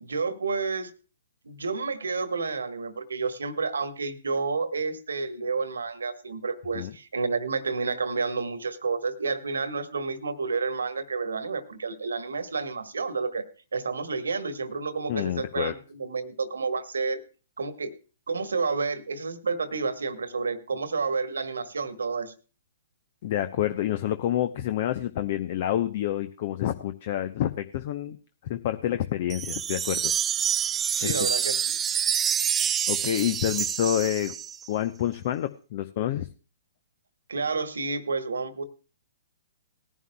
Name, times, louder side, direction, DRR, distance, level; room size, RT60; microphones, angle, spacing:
voice 1, 0.0-0.9 1.4-13.4 13.7-17.2 17.6-17.9 18.3-22.3 31.0-31.8 37.3-38.6, right 4 dB, 80° right, 12 dB, 1.4 m, -30 dB
voice 2, 15.1-15.7 23.2-28.2 28.4-30.1 31.0-31.3 32.9-34.3 34.7-36.3, left 11 dB, 50° left, 10 dB, 0.7 m, -28 dB
sound 1, 29.3-34.7, right 8 dB, 15° right, 0.5 m, -27 dB
19.5 x 11.0 x 2.2 m, 0.35 s
hypercardioid pair, 125°, 0 cm